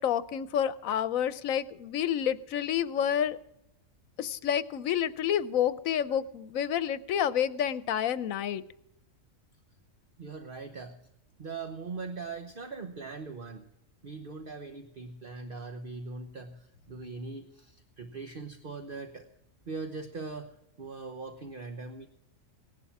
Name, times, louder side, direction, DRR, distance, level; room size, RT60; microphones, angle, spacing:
voice 1, 0.0-3.4 4.2-8.6, left 9 dB, 80° left, 15 dB, 1.1 m, -29 dB
voice 2, 10.2-11.0 11.4-13.7 14.0-19.3 19.6-22.1, right 4 dB, 45° right, 6 dB, 1.1 m, -41 dB
17.5 x 11.5 x 6.0 m, 0.84 s
omnidirectional pair, 1.4 m